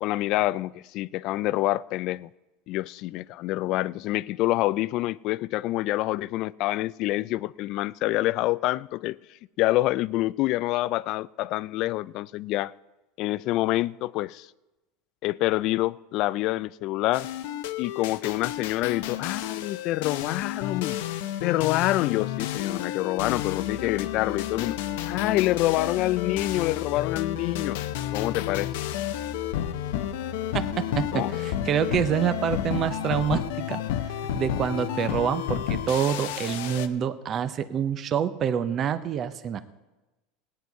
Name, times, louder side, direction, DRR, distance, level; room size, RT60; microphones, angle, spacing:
voice 1, 0.0-2.3 2.7-9.2 9.6-12.7 13.2-14.5 15.2-17.3 17.8-21.0 21.4-24.8 25.1-27.8 28.1-28.7 31.1-31.3, left 17 dB, 50° left, 0.3 m, -27 dB
sound 1, 17.1-36.9, left 11 dB, 80° left, 0.7 m, -31 dB
voice 2, 31.0-39.6, right 8 dB, 35° right, 0.7 m, -27 dB
17.0 x 9.6 x 4.6 m
supercardioid pair, 135°, 0 cm